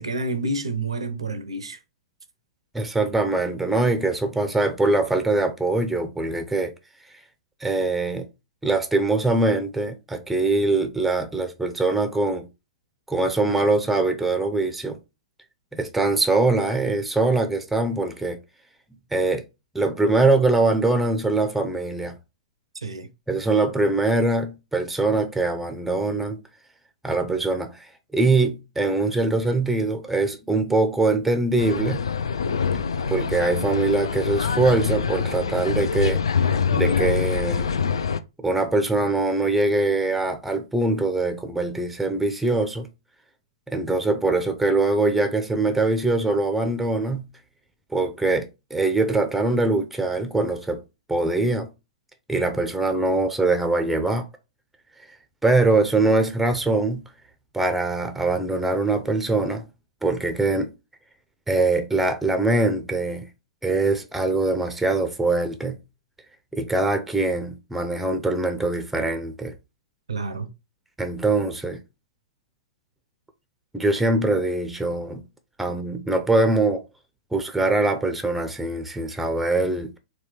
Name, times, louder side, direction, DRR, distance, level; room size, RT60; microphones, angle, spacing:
voice 1, 0.0-1.8 22.8-23.1 70.1-70.5, right 2 dB, 80° right, 0.6 m, -29 dB
voice 2, 2.7-6.7 7.6-8.3 8.6-12.5 13.1-15.0 15.7-18.4 19.1-19.4 19.7-22.1 23.3-26.4 27.0-32.0 33.1-36.2 36.7-37.7 38.4-42.9 43.7-47.3 47.9-50.8 51.1-51.7 52.3-54.3 55.4-57.0 57.5-59.6 60.0-60.7 61.5-63.3 63.6-65.8 66.5-69.5 71.0-71.8 73.7-75.2 75.6-76.8 77.3-79.9, right 2 dB, 5° right, 0.5 m, -23 dB
sound 1, 31.6-38.2, left 6 dB, 75° left, 0.3 m, -25 dB
4.0 x 2.3 x 3.2 m
figure-of-eight pair, 110°, 3 cm